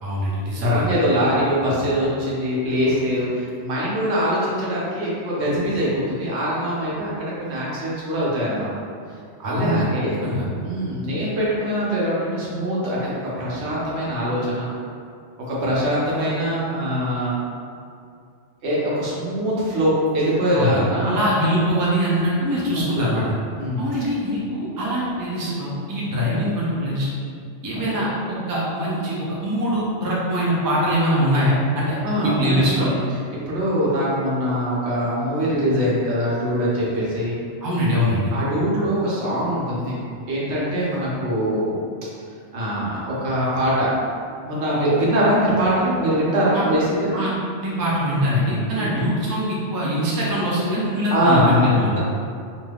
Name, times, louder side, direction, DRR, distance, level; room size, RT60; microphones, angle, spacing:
voice 1, 0.0-0.8 9.4-9.9 10.2-10.5 20.5-20.8 21.0-23.3 23.8-27.1 27.6-32.9 37.6-38.3 46.5-46.7 47.1-47.3 47.6-52.0, equal, 30° right, -6 dB, 0.4 m, -23 dB
voice 2, 0.6-8.7 9.4-10.2 10.6-13.1 13.4-14.7 15.5-17.4 18.6-21.2 22.8-23.2 23.6-23.9 27.9-28.0 32.0-32.9 33.5-37.4 38.3-40.0 40.2-41.7 42.5-43.9 44.4-47.1 48.7-49.1 51.1-52.0, equal, 70° right, -7 dB, 1.0 m, -23 dB
3.3 x 2.7 x 2.3 m, 2.3 s
omnidirectional pair, 1.2 m